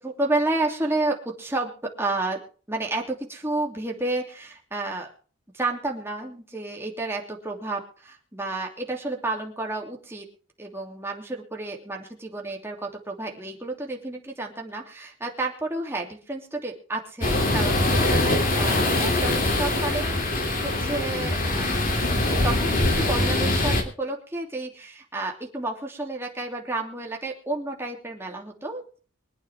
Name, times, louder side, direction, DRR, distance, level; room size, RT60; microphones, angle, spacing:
voice 1, 0.0-1.7 2.0-2.4 2.7-5.1 5.5-10.3 10.6-21.7 21.9-22.1 22.4-29.0, right 2 dB, 10° right, 0 dB, 2.9 m, -31 dB
sound 1, 17.2-23.8, left 2 dB, 40° left, 3.0 m, -23 dB
24.5 x 9.1 x 3.6 m, 0.40 s
head